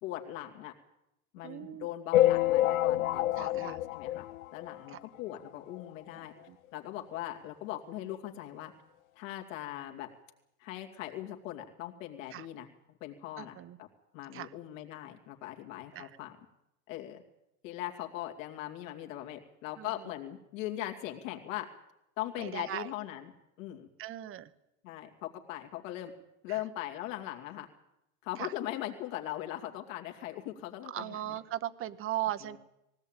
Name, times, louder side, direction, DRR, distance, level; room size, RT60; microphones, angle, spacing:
voice 1, 0.0-0.7 1.3-4.2 4.5-6.3 6.7-8.7 9.2-10.1 10.6-12.7 13.0-13.9 14.1-16.4 16.9-17.2 17.6-21.7 22.2-23.3 23.6-23.9 24.8-26.1 26.4-27.7 28.2-31.4 32.4-32.6, left 13 dB, 65° left, 2 dB, 2.7 m, -40 dB
voice 2, 1.4-1.9 3.4-3.8 4.9-5.0 6.2-6.6 12.3-12.5 13.4-13.8 14.3-14.5 15.9-16.1 19.8-19.9 22.4-22.9 24.0-24.5 26.5-26.6 28.4-28.5 30.9-32.6, right 13 dB, 30° right, 14 dB, 1.0 m, -38 dB
sound 1, 2.1-5.0 5.5-5.6 5.7-5.9 6.2-6.3 7.1-7.2 7.7-7.8, left 14 dB, 85° left, 0.8 m, -27 dB
19.5 x 17.0 x 9.1 m, 0.88 s
supercardioid pair, 130°, 41 cm